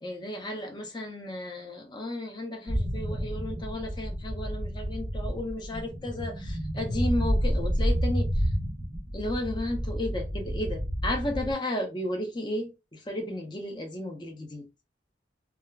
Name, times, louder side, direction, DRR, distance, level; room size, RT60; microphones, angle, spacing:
voice 1, 0.0-8.5 9.1-14.7, left 1 dB, 25° left, 0.5 m, -34 dB
sound 1, 2.7-11.5, equal, 15° right, 0.7 m, -30 dB
2.2 x 2.0 x 3.3 m
head